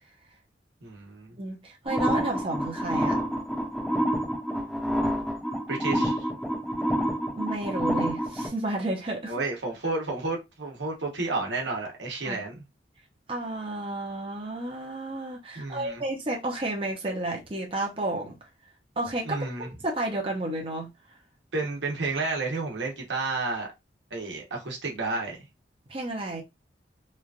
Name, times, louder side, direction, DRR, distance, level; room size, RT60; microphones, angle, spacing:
voice 1, 0.8-1.4 5.7-6.3 9.3-12.6 15.5-16.0 19.3-19.7 21.5-23.7 24.1-25.4, right 3 dB, 90° right, 1.1 m, -31 dB
voice 2, 1.3-3.2 7.4-9.3 12.2-12.4 13.3-18.4 19.0-20.9 25.9-26.4, right 2 dB, 30° right, 0.7 m, -32 dB
sound 1, 1.9-8.5, equal, ahead, 0.8 m, -28 dB
3.0 x 2.4 x 2.4 m
head